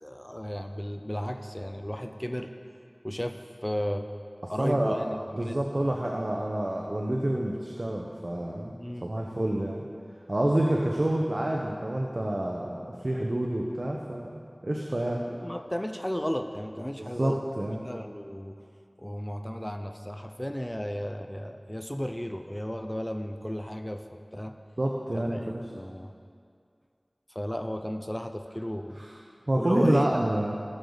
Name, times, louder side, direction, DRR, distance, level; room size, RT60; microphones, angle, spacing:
voice 1, 0.0-2.5 3.0-4.1 4.5-5.6 8.8-9.1 15.2-17.4 17.8-18.6 19.0-24.6 25.1-26.1 27.3-29.0 29.5-30.1, equal, 15° left, 6 dB, 0.6 m, -34 dB
voice 2, 4.4-5.0 5.3-8.7 9.0-9.9 10.3-15.2 17.0-17.8 24.8-25.4 29.0-29.1 29.5-30.6, right 1 dB, 65° right, -1 dB, 0.9 m, -28 dB
18.0 x 6.8 x 4.0 m, 2.3 s
wide cardioid pair, 45°, 0 cm